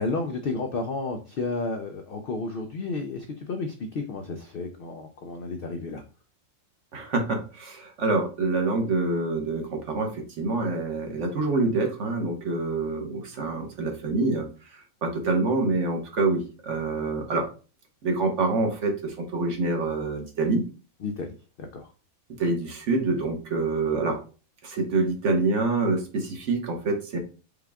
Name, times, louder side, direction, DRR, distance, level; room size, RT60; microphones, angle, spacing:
voice 1, 0.0-6.0 21.0-21.3 21.6-21.9, left 3 dB, 75° left, 5 dB, 0.5 m, -32 dB
voice 2, 6.9-17.4 18.0-20.6 22.4-24.2 24.6-27.2, right 3 dB, 60° right, 3 dB, 1.2 m, -26 dB
5.0 x 2.3 x 3.4 m, 0.35 s
omnidirectional pair, 1.5 m